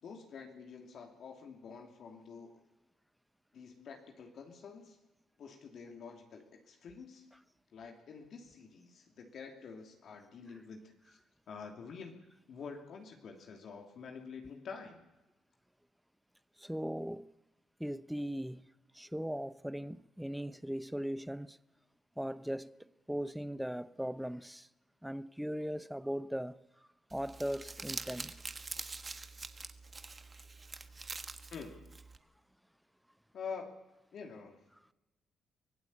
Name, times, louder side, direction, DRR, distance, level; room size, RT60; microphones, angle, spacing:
voice 1, 0.0-2.6 3.5-5.0 5.4-7.3 7.7-11.2 11.5-12.2 12.5-15.0 31.5-32.0 33.3-33.7 34.1-34.6, left 5 dB, 65° left, 2.9 m, -48 dB
voice 2, 16.6-17.3 17.8-18.7 18.9-21.6 22.2-22.8 23.1-24.7 25.0-26.6 27.1-28.4, equal, ahead, 0.7 m, -38 dB
Crumpling crinkling, 27.1-32.2, right 3 dB, 25° right, 1.3 m, -45 dB
24.0 x 16.5 x 8.6 m
cardioid pair, 90°, 0 cm